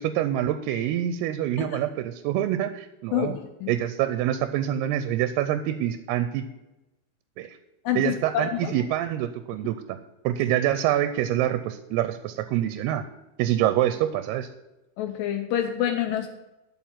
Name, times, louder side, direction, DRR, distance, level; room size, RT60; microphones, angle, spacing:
voice 1, 0.0-3.4 3.7-6.4 7.4-7.6 8.0-10.0 10.2-13.0 13.4-14.5, right 12 dB, 90° right, 11 dB, 2.6 m, -26 dB
voice 2, 3.1-3.7 7.8-8.7 15.0-16.3, left 11 dB, 75° left, 5 dB, 2.1 m, -27 dB
13.0 x 4.7 x 7.4 m, 1.0 s
omnidirectional pair, 4.5 m